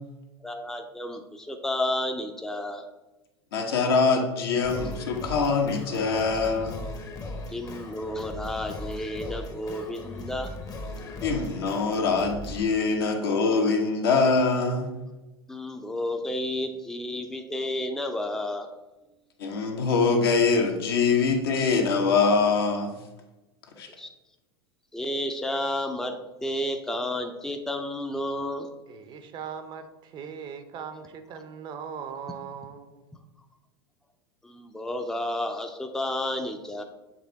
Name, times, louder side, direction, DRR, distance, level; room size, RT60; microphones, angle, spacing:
voice 1, 0.4-2.8 7.5-10.5 15.5-18.7 24.0-24.1 24.9-28.7 34.4-36.8, left 1 dB, 5° left, 5 dB, 0.5 m, -31 dB
voice 2, 3.5-6.8 11.2-14.9 19.4-22.9 23.8-23.9, left 4 dB, 70° left, 2 dB, 1.1 m, -23 dB
Singing, 4.6-12.6, left 2 dB, 25° left, 0.9 m, -38 dB
voice 3, 28.9-33.0, right 7 dB, 40° right, 9 dB, 0.7 m, -39 dB
7.4 x 3.3 x 4.0 m, 1.1 s
hypercardioid pair, 85°, 13 cm